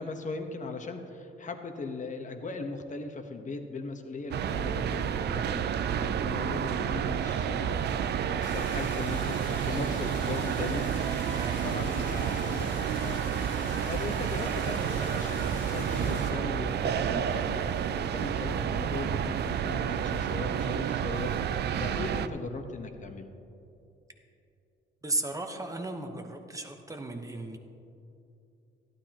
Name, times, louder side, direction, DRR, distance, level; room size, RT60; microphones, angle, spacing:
voice 1, 0.0-10.9 11.5-23.3, left 3 dB, 40° left, 5 dB, 1.1 m, -39 dB
sound 1, 4.3-22.3, right 8 dB, 60° right, 0.5 m, -30 dB
sound 2, 8.4-16.3, left 3 dB, 65° left, 2.1 m, -43 dB
voice 2, 25.0-27.6, right 2 dB, 15° right, 4 dB, 1.0 m, -35 dB
13.5 x 11.5 x 2.9 m, 2.7 s
cardioid pair, 90°, 20 cm